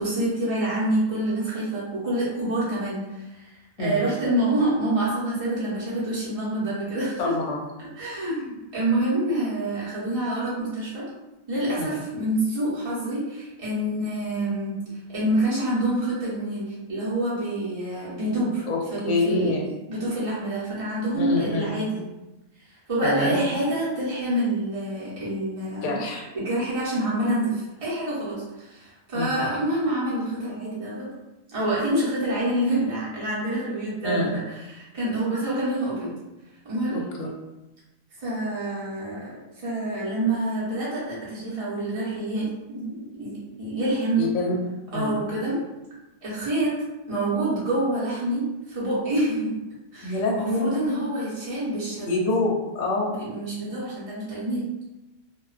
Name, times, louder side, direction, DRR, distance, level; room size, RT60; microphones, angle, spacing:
voice 1, 0.0-3.5 3.8-7.3 8.0-11.1 11.5-14.7 15.1-18.6 18.9-19.5 19.9-22.0 22.9-26.0 26.3-31.1 31.5-34.4 34.7-36.1 36.6-37.0 38.2-44.3 44.9-45.6 46.2-46.7 47.1-49.5 49.9-52.1 53.1-54.7, right 1 dB, 30° right, -8 dB, 0.8 m, -27 dB
voice 2, 7.2-7.6 11.8-12.0 18.7-19.7 21.1-21.7 23.0-23.4 25.8-26.3 29.1-29.4 34.0-34.3 36.9-37.3 44.2-44.5 44.9-45.2 50.0-50.7 52.1-53.1, left 2 dB, 70° left, -1 dB, 0.8 m, -26 dB
2.3 x 2.2 x 2.3 m, 1.0 s
omnidirectional pair, 1.4 m